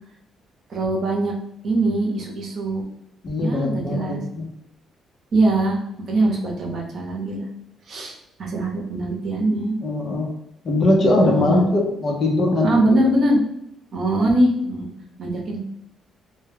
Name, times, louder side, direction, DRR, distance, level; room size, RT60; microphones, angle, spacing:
voice 1, 0.7-1.3 1.6-2.8 3.4-4.2 5.3-5.8 6.1-7.5 7.9-9.8 11.2-11.7 12.6-13.4 13.9-14.9 15.2-15.6, right 1 dB, 60° right, -1 dB, 0.7 m, -22 dB
voice 2, 3.2-4.5 9.8-10.3 10.6-13.0, left 2 dB, 50° left, 0 dB, 0.7 m, -21 dB
2.2 x 2.2 x 3.3 m, 0.80 s
cardioid pair, 90°, 0 cm